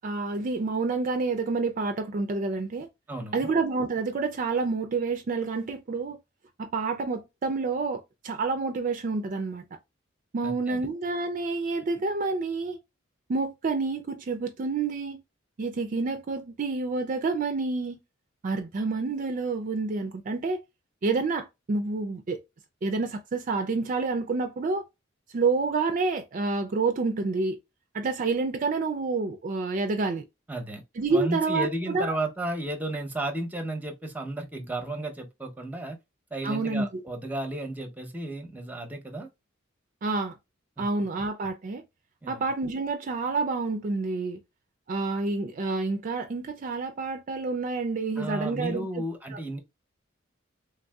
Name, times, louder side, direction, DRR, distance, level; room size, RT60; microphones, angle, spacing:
voice 1, 0.0-2.9 3.3-6.2 6.6-9.6 10.3-12.8 13.3-15.2 15.6-18.0 18.4-20.6 21.0-22.4 22.8-24.8 25.3-27.6 27.9-30.2 31.0-32.2 36.4-37.0 40.0-40.4 40.8-41.8 42.3-44.4 44.9-49.0 49.3-49.4, right 3 dB, 45° right, 0.4 m, -28 dB
voice 2, 3.1-3.5 10.4-10.8 30.5-30.8 31.1-36.0 36.3-39.3 40.8-40.9 42.2-42.5 48.2-49.6, right 1 dB, 10° right, 0.7 m, -33 dB
3.4 x 2.6 x 2.2 m
head